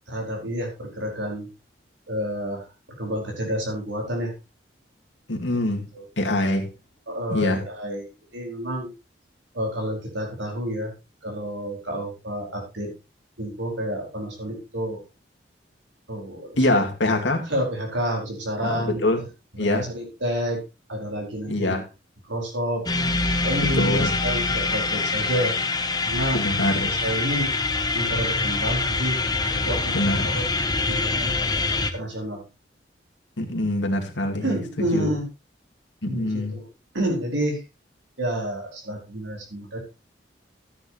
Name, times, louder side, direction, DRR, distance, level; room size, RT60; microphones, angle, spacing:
voice 1, 0.1-1.5 2.1-4.3 5.9-6.1 6.3-6.5 7.1-8.9 9.5-10.9 11.2-12.9 13.4-15.0 16.1-16.5 17.4-19.0 19.5-20.6 20.9-21.7 22.3-22.8 23.4-25.6 26.0-26.4 26.7-27.5 27.9-29.2 29.5-30.5 30.8-31.4 31.9-32.4 34.4-35.3 36.0-36.7 36.9-37.6 38.2-39.8, equal, 90° right, 4.8 m, -29 dB
voice 2, 5.3-5.9 6.2-6.7 7.3-7.6 16.6-17.5 18.6-19.2 19.6-19.9 21.5-21.9 23.8-24.1 26.3-26.9 29.9-30.3 33.4-35.1 36.0-36.6, left 1 dB, 85° left, 2.3 m, -24 dB
sound 1, 22.9-31.9, left 3 dB, 20° left, 0.9 m, -25 dB
13.5 x 9.7 x 3.0 m
head